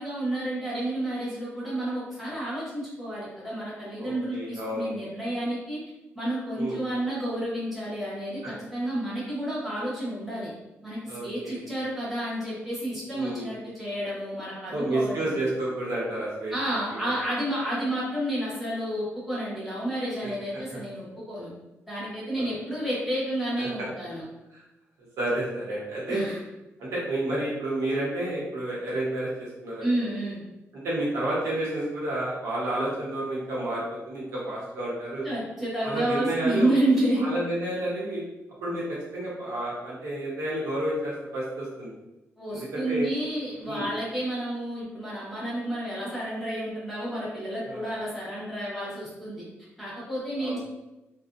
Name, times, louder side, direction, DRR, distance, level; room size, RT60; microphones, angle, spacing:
voice 1, 0.0-5.8 6.1-10.5 10.8-15.4 16.5-21.5 21.9-24.2 26.1-26.4 29.8-30.4 35.2-37.3 42.4-49.4 49.8-50.6, right 1 dB, 5° right, -9 dB, 1.0 m, -30 dB
voice 2, 4.0-4.9 6.6-6.8 8.4-8.5 11.1-11.6 13.1-13.5 14.7-16.5 16.9-17.0 22.4-22.5 23.6-23.9 24.5-24.6 25.2-26.3 26.8-29.9 30.8-35.3 35.8-36.7 37.2-38.2 38.6-41.9 42.5-43.1 43.6-43.9 47.7-47.8 50.4-50.6, right 1 dB, 85° right, -6 dB, 1.0 m, -30 dB
2.5 x 2.3 x 2.5 m, 0.96 s
wide cardioid pair, 155°, 5 cm